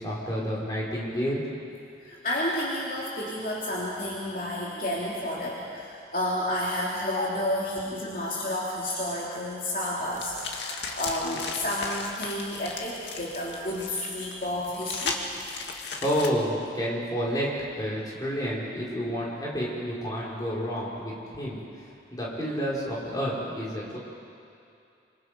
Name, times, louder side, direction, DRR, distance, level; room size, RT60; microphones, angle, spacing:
voice 1, 0.0-1.5 16.0-21.6 22.1-24.0, equal, 20° left, -5 dB, 5.1 m, -30 dB
voice 2, 2.0-15.2, left 1 dB, 50° left, -5 dB, 3.0 m, -31 dB
sound 1, 10.1-16.3, left 4 dB, 85° left, 2.1 m, -36 dB
26.5 x 26.0 x 5.3 m, 2.5 s
head